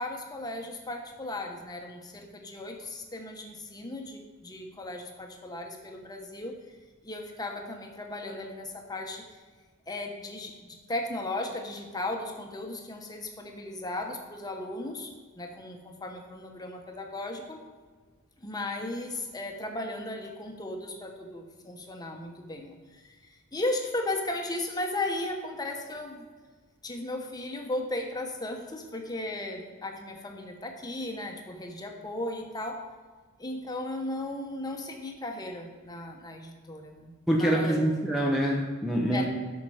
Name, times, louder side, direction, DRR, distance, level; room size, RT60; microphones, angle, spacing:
voice 1, 0.0-6.6 7.0-9.2 9.9-17.6 18.4-26.3 26.8-32.8 33.4-37.8 39.1-39.3, left 2 dB, 15° left, 2 dB, 1.1 m, -36 dB
voice 2, 37.3-39.3, right 1 dB, ahead, -2 dB, 0.8 m, -25 dB
13.0 x 5.8 x 4.9 m, 1.5 s
head